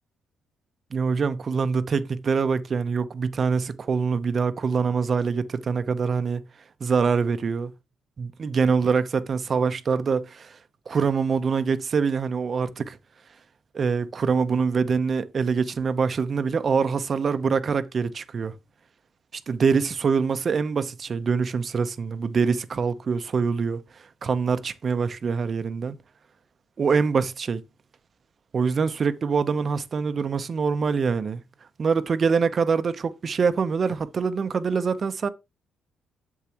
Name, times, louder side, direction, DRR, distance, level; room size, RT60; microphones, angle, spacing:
voice 1, 0.9-6.4 6.8-7.7 8.2-10.6 10.9-13.0 13.7-18.5 19.3-23.8 24.2-26.0 26.8-27.6 28.5-31.4 31.8-35.3, right 5 dB, 45° right, 0.8 m, -24 dB
8.4 x 7.3 x 2.9 m
cardioid pair, 90°, 0 cm